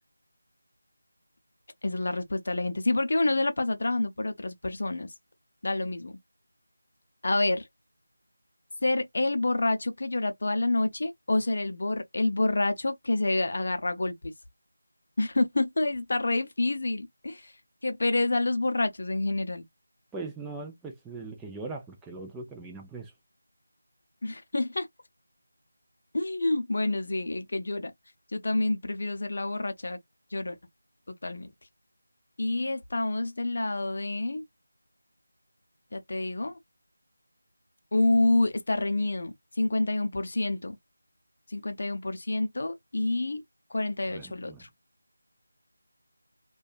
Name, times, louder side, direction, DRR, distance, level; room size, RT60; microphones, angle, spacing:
voice 1, 1.8-5.1 5.6-6.2 7.2-7.7 8.8-14.3 15.2-17.5 17.8-19.6 24.2-24.9 26.1-27.9 28.3-30.0 30.3-30.6 31.1-31.5 32.4-34.4 35.9-36.6 37.9-40.8 41.5-43.4 43.7-44.7, left 2 dB, 45° left, 0.6 m, -28 dB
voice 2, 20.1-23.1 44.1-44.6, right 3 dB, 5° right, 0.3 m, -40 dB
2.7 x 2.2 x 2.3 m
figure-of-eight pair, 175°, 0 cm